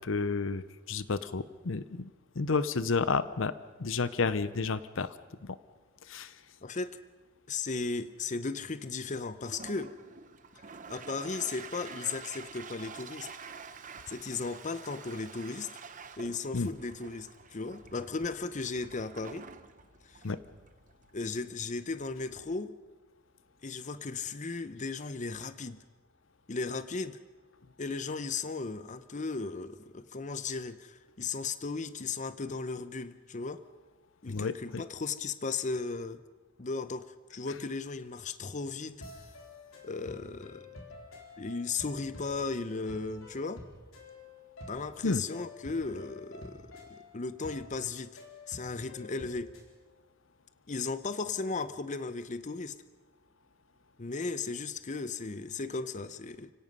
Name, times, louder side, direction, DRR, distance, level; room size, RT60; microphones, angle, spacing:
voice 1, 0.0-2.1 2.4-3.5 3.8-5.1 5.4-5.6 6.1-6.3 16.5-16.7 20.2-20.4 34.3-34.8 45.0-45.2, left 4 dB, 70° left, 15 dB, 0.7 m, -31 dB
voice 2, 6.6-7.0 7.5-10.0 10.9-13.3 14.1-15.7 16.2-19.5 20.0-20.2 21.1-22.8 23.6-25.8 26.5-27.2 27.8-33.6 34.2-36.2 36.6-39.0 39.8-40.7 41.4-43.6 44.7-48.2 48.5-49.6 50.7-52.8 54.0-56.5, left 4 dB, 40° left, 12 dB, 0.7 m, -36 dB
Toilet flush, 9.3-22.5, right 5 dB, 40° right, 1.0 m, -48 dB
sound 1, 39.0-49.7, left 2 dB, 90° left, 4.1 m, -49 dB
30.0 x 17.0 x 5.5 m, 1.3 s
head